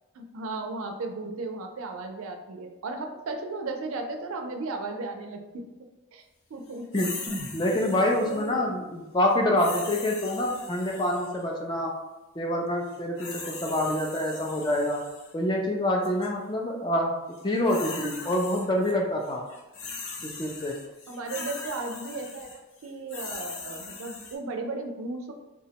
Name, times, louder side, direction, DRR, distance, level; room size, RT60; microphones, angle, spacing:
voice 1, 0.1-6.2 6.5-7.1 8.3-8.8 21.1-25.3, right 3 dB, 75° right, 4 dB, 0.4 m, -35 dB
sound 1, 6.9-8.5 9.6-11.4 12.9-15.3 16.0-16.3 17.3-18.9 19.2-24.4, left 4 dB, 70° left, 0.6 m, -40 dB
sound 2, 7.3-11.2 11.5-11.6, equal, 10° right, 1.0 m, -44 dB
voice 2, 7.5-11.9 12.4-15.0 15.3-17.1 17.4-19.4 20.2-20.8, left 1 dB, 20° left, 0 dB, 0.3 m, -26 dB
3.4 x 2.0 x 2.8 m, 1.1 s
head